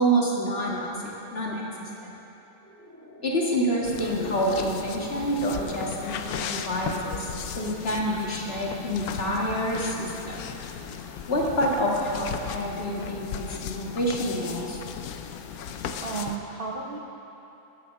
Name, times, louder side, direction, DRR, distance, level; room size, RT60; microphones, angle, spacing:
voice 1, 0.0-2.2 3.2-7.3 7.6-10.4 11.3-14.8, right 1 dB, 45° left, -3 dB, 1.8 m, -27 dB
sound 1, 2.5-7.1 7.4-7.5, left 1 dB, 10° left, 1.3 m, -44 dB
sound 2, 3.8-16.4, left 7 dB, 85° left, 1.1 m, -36 dB
voice 2, 15.7-17.0, right 4 dB, 50° right, 0 dB, 0.7 m, -34 dB
11.5 x 7.1 x 7.0 m, 3.0 s
omnidirectional pair, 1.5 m